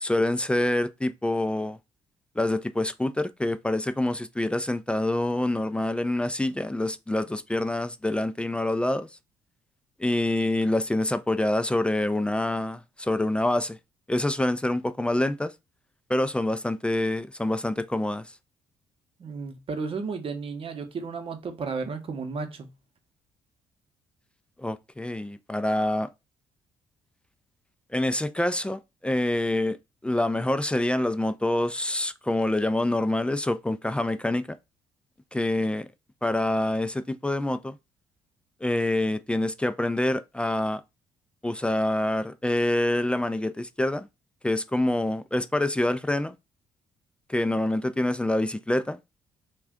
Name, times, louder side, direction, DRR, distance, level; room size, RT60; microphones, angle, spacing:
voice 1, 0.0-1.8 2.4-9.1 10.0-13.8 14.1-15.5 16.1-18.3 24.6-26.1 27.9-29.8 30.0-34.5 35.3-35.9 36.2-37.8 38.6-40.8 41.4-44.1 44.4-46.3 47.3-49.0, left 1 dB, 10° left, 0.3 m, -26 dB
voice 2, 19.2-22.7, right 4 dB, 50° right, 0.8 m, -33 dB
2.4 x 2.2 x 3.5 m
hypercardioid pair, 50°, 12 cm